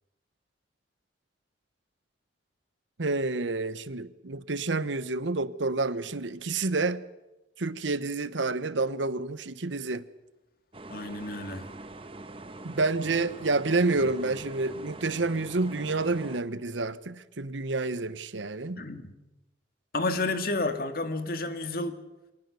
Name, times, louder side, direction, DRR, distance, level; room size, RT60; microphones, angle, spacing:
voice 1, 3.0-7.0 7.6-10.1 12.6-18.8, right 3 dB, 80° right, 1.0 m, -29 dB
sound 1, 10.7-16.4, right 2 dB, 30° right, 1.2 m, -44 dB
voice 2, 10.9-11.7 14.0-14.1 18.8-19.1 19.9-22.0, left 2 dB, 50° left, 2.0 m, -31 dB
25.5 x 19.0 x 6.9 m
head